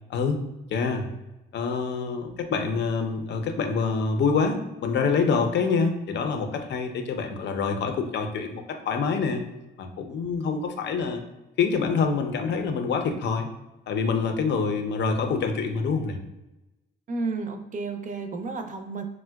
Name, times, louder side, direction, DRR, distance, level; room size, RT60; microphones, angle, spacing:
voice 1, 0.7-1.1 1.5-9.4 9.8-11.2 11.6-13.5 13.9-16.2, left 5 dB, 60° left, 5 dB, 0.5 m, -26 dB
voice 2, 17.1-19.0, right 3 dB, 40° right, 6 dB, 0.5 m, -32 dB
4.5 x 2.1 x 2.2 m, 1.0 s
cardioid pair, 90°, 20 cm